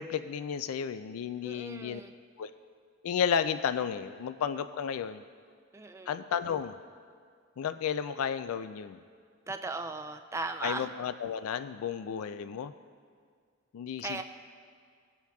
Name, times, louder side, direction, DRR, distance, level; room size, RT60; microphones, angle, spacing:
voice 1, 0.0-2.0 2.4-2.5 3.0-5.2 6.1-6.8 7.6-9.0 10.6-12.7 13.7-14.2, left 7 dB, 90° left, 11 dB, 0.3 m, -32 dB
voice 2, 1.4-2.1 5.7-6.1 9.5-10.9 14.0-14.2, right 3 dB, 15° right, 6 dB, 0.3 m, -37 dB
20.5 x 7.1 x 2.3 m, 2.1 s
head